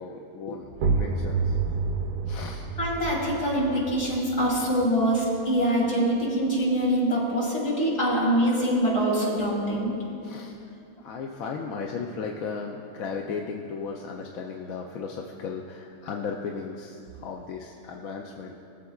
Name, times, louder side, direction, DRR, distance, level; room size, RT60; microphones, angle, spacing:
voice 1, 0.0-1.6 2.3-2.7 10.2-10.6 11.0-18.5, left 5 dB, 70° left, 1 dB, 1.0 m, -35 dB
sound 1, 0.7-6.3, right 4 dB, 80° right, 1.2 m, -30 dB
voice 2, 2.8-10.0, equal, 55° left, -4 dB, 2.6 m, -24 dB
20.5 x 7.4 x 2.3 m, 2.7 s
omnidirectional pair, 1.7 m